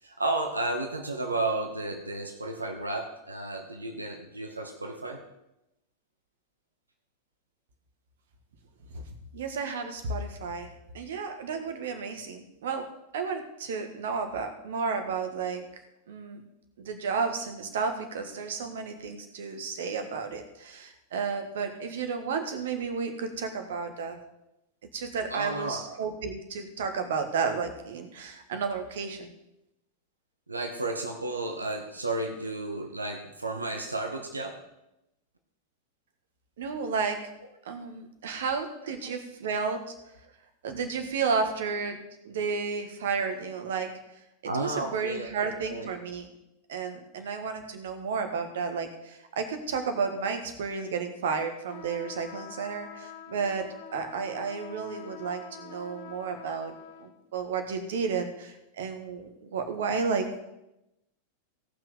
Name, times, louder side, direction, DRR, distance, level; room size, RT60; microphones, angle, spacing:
voice 1, 0.0-5.2 25.3-25.8 30.5-34.6 38.2-38.3 39.0-39.1 44.4-45.9, right 2 dB, 80° right, 4 dB, 1.1 m, -33 dB
voice 2, 9.3-12.9 13.1-15.6 16.1-16.4 16.8-24.2 24.9-29.3 36.6-37.2 37.6-39.9 40.6-42.0 42.2-43.9 44.4-46.3 46.7-60.3, right 5 dB, 60° right, 7 dB, 1.6 m, -32 dB
sound 1, 51.7-57.1, left 8 dB, 50° left, 1.3 m, -46 dB
17.0 x 6.0 x 5.2 m, 0.90 s
figure-of-eight pair, 90°, 0 cm